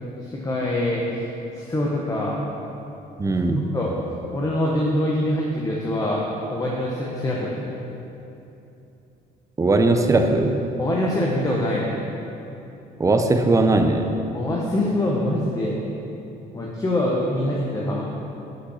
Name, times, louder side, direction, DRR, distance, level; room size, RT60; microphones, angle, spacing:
voice 1, 0.2-1.3 1.5-2.4 3.3-3.4 3.7-6.2 6.5-7.7 10.8-11.9 14.3-15.8 16.5-18.0, left 1 dB, 20° left, -3 dB, 0.9 m, -24 dB
voice 2, 3.2-3.7 9.6-10.6 13.0-14.1, right 2 dB, 20° right, 6 dB, 0.6 m, -19 dB
6.2 x 5.7 x 5.6 m, 2.8 s
cardioid pair, 110°, 17 cm